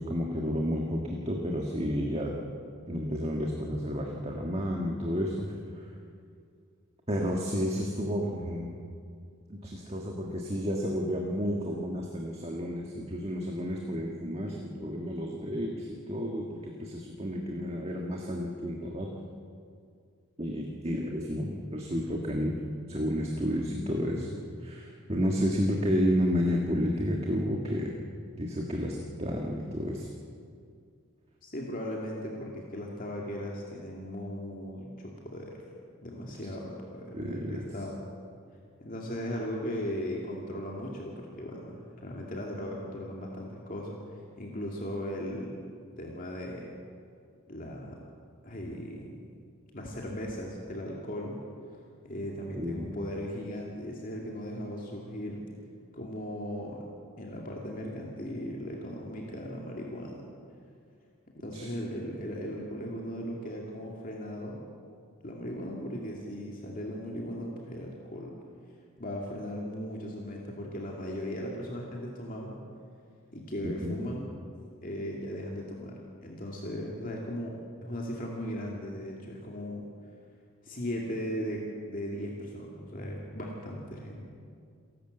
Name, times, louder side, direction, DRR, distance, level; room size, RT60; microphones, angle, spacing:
voice 1, 0.0-2.3 2.9-5.5 5.7-5.9 7.1-8.7 9.5-19.1 20.4-22.6 22.9-24.3 24.6-27.9 28.4-30.1 37.1-37.7 52.5-52.9 61.5-61.7 73.6-74.0, equal, 25° right, 0 dB, 1.6 m, -31 dB
voice 2, 31.4-35.5 36.0-38.0 38.8-45.6 46.0-46.7 47.5-48.0 48.4-49.2 49.7-51.4 52.0-55.4 55.9-56.8 57.2-60.3 61.3-64.6 65.2-68.3 69.0-72.6 73.3-74.3 74.8-79.8 80.6-81.6 81.9-84.2, equal, 40° left, -2 dB, 2.3 m, -37 dB
28.0 x 12.0 x 8.0 m, 2.3 s
head